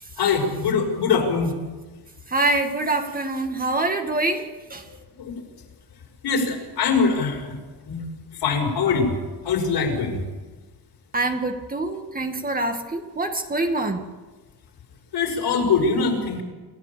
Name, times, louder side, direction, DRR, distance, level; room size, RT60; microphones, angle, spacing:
voice 1, 0.2-1.5 5.2-5.4 6.2-7.6 7.9-8.0 8.4-9.1 9.4-10.2 15.1-16.4, left 5 dB, 75° left, 1 dB, 5.9 m, -22 dB
voice 2, 2.3-4.4 4.7-4.8 11.1-14.0, right 2 dB, 20° right, 4 dB, 2.0 m, -25 dB
27.5 x 14.0 x 8.6 m, 1.3 s
wide cardioid pair, 155°, 41 cm